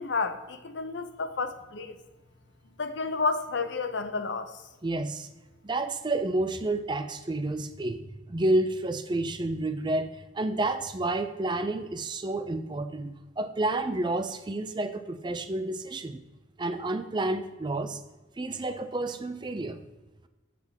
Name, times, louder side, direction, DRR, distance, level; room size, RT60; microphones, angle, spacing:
voice 1, 0.0-2.0 2.8-4.5, left 4 dB, 60° left, 9 dB, 0.7 m, -31 dB
voice 2, 4.8-5.3 5.6-8.0 8.3-16.2 16.6-18.0 18.4-19.8, right 2 dB, 20° right, 9 dB, 0.4 m, -30 dB
7.8 x 7.6 x 3.5 m, 1.1 s
head